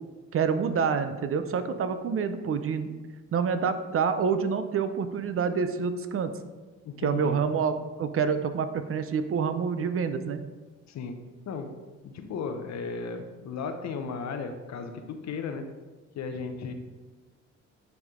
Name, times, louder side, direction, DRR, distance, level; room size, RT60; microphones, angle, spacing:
voice 1, 0.3-3.0 3.3-6.3 7.0-10.4, right 6 dB, 45° right, 10 dB, 0.5 m, -27 dB
voice 2, 6.8-7.4 10.9-11.1 11.5-11.7 12.0-15.6 16.1-16.7, left 5 dB, 65° left, 7 dB, 0.8 m, -35 dB
9.2 x 3.5 x 3.7 m, 1.3 s
cardioid pair, 90°, 30 cm